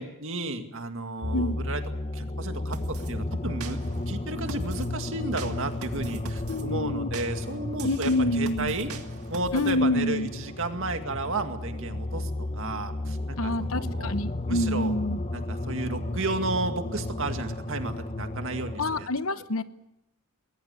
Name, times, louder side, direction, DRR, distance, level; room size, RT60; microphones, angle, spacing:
voice 1, 0.0-1.8 2.1-3.8 4.1-8.9 9.3-13.2 13.4-14.1 14.5-15.0 15.3-19.1, right 2 dB, 60° right, 6 dB, 2.2 m, -33 dB
sound 1, 1.2-19.1, left 1 dB, 30° left, 0.9 m, -33 dB
sound 2, 2.7-3.1 3.6-4.1 4.5-4.9 5.4-6.6 7.1-9.8, right 4 dB, 80° right, 1.9 m, -42 dB
voice 2, 6.5-7.1 7.8-8.7 9.5-10.3 13.4-15.2 18.8-19.6, left 2 dB, 65° left, 13 dB, 1.0 m, -27 dB
21.0 x 19.5 x 8.3 m, 0.85 s
head